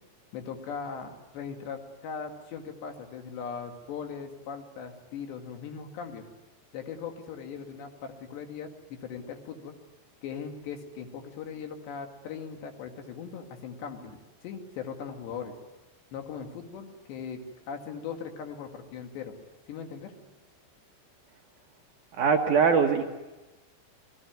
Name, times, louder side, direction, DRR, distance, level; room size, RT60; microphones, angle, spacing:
voice 1, 0.3-6.3 6.7-9.8 10.2-15.5 16.1-19.3 19.7-20.1, left 6 dB, 75° left, 5 dB, 4.2 m, -39 dB
voice 2, 22.1-23.0, right 5 dB, 60° right, 2 dB, 2.4 m, -22 dB
28.5 x 20.0 x 9.3 m, 1.1 s
omnidirectional pair, 5.0 m